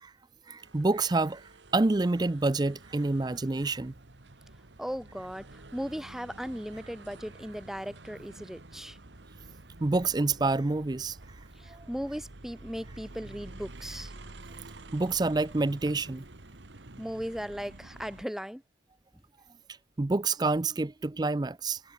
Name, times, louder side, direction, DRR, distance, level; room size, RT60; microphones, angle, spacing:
voice 1, 0.5-1.4 1.7-3.9 9.8-11.2 11.7-11.9 14.9-16.2 20.0-21.8, right 3 dB, 25° right, 0.5 m, -27 dB
sound 1, 0.6-18.2, right 2 dB, 80° right, 1.7 m, -49 dB
voice 2, 4.8-5.5 5.7-9.0 11.6-14.1 17.0-18.6, equal, ahead, 1.3 m, -37 dB
head